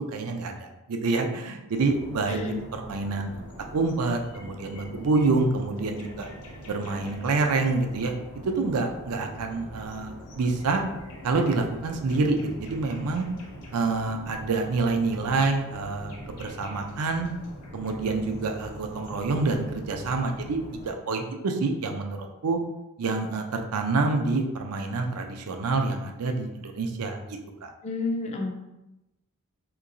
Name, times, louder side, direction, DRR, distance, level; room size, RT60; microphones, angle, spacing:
voice 1, 0.1-3.3 3.7-6.3 6.7-8.1 8.5-10.8 11.2-13.3 13.7-17.3 17.7-20.6 20.8-22.6 23.0-27.7, right 3 dB, 80° right, 4 dB, 0.5 m, -27 dB
sound 1, 1.7-20.9, equal, 75° left, 0.7 m, -43 dB
voice 2, 2.3-2.6 27.8-28.6, left 3 dB, 30° left, 2 dB, 0.4 m, -30 dB
3.6 x 2.9 x 2.5 m, 0.95 s
head